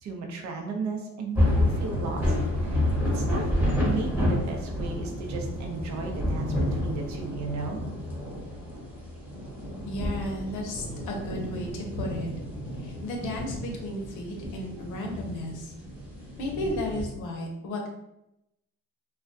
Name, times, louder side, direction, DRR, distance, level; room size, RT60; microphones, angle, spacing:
voice 1, 0.0-1.5 1.8-2.3 2.6-2.8 3.1-3.4 3.8-7.8 14.7-14.8, right 4 dB, 65° right, 2 dB, 0.6 m, -34 dB
sound 1, 1.3-17.1, left 1 dB, 5° right, 0.9 m, -30 dB
voice 2, 9.8-12.3 12.8-15.7 16.4-17.9, left 1 dB, 90° left, 1 dB, 0.6 m, -34 dB
2.2 x 2.2 x 2.5 m, 0.86 s
cardioid pair, 90°, 30 cm